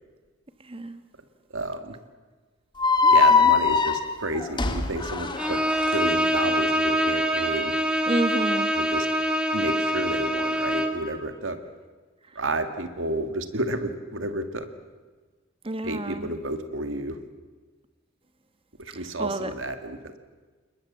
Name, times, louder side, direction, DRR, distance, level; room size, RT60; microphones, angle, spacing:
voice 1, 0.6-1.0 3.0-3.5 8.1-8.7 15.6-16.3 18.9-19.5, right 1 dB, 30° right, 10 dB, 1.3 m, -30 dB
voice 2, 1.5-2.0 3.1-5.6 5.9-7.7 8.8-9.1 9.5-11.6 12.4-14.7 15.8-17.2 18.8-20.2, right 1 dB, 85° right, 8 dB, 1.9 m, -31 dB
sound 1, 2.8-6.0, left 5 dB, 25° left, 1.4 m, -21 dB
Bowed string instrument, 5.4-11.1, equal, 5° right, 1.9 m, -25 dB
28.0 x 21.5 x 7.3 m, 1.4 s
head